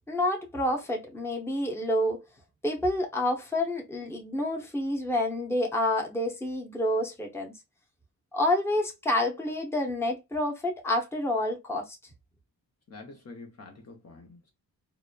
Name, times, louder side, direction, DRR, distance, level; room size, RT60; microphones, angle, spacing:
voice 1, 0.1-2.2 2.6-7.5 8.3-12.0, left 1 dB, 5° left, 0.9 m, -28 dB
voice 2, 12.9-14.5, left 3 dB, 40° left, 0.9 m, -47 dB
3.0 x 2.1 x 2.3 m
cardioid pair, 70°, 39 cm